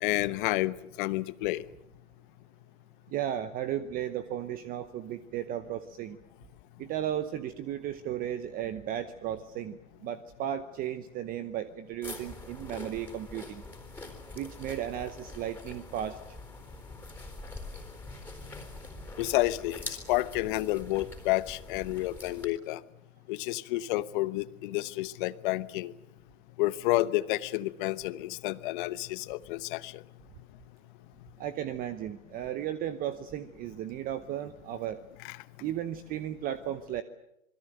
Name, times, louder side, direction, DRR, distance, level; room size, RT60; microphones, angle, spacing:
voice 1, 0.0-1.6 19.2-22.8 23.3-25.9 26.6-30.0 35.2-35.4, left 18 dB, 40° left, 16 dB, 1.1 m, -30 dB
voice 2, 3.1-6.2 6.8-13.6 14.3-16.2 31.4-35.0 35.6-37.0, right 11 dB, 20° right, 13 dB, 0.9 m, -35 dB
sound 1, 12.0-22.5, left 2 dB, 5° left, 4.0 m, -44 dB
27.0 x 21.0 x 7.8 m, 0.82 s
hypercardioid pair, 135°, 41 cm